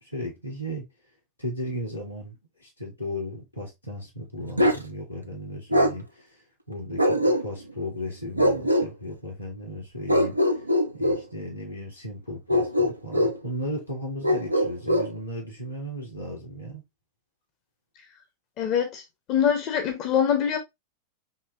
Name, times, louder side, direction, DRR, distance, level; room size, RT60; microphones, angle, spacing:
voice 1, 0.0-0.8 1.4-6.4 6.7-10.6 10.9-16.8, equal, 85° left, 2.1 m, -35 dB
Bark, 4.6-4.8 5.7-5.9 7.0-7.7 8.4-8.9 10.1-11.2 12.5-13.4 14.2-15.1, equal, 85° right, 0.6 m, -22 dB
voice 2, 18.6-19.0 19.3-20.6, left 8 dB, 40° left, 0.9 m, -23 dB
5.4 x 2.8 x 3.1 m
figure-of-eight pair, 90°, 0 cm